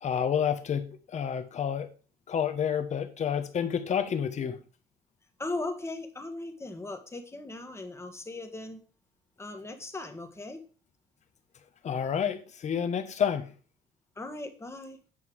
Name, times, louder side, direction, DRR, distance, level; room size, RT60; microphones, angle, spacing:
voice 1, 0.0-1.9 2.3-4.6 11.8-13.5, left 8 dB, 45° left, 8 dB, 1.1 m, -29 dB
voice 2, 5.4-8.8 9.4-10.6 14.2-15.0, left 2 dB, 15° left, 7 dB, 1.4 m, -38 dB
8.2 x 5.4 x 4.8 m, 0.38 s
cardioid pair, 110°, 17 cm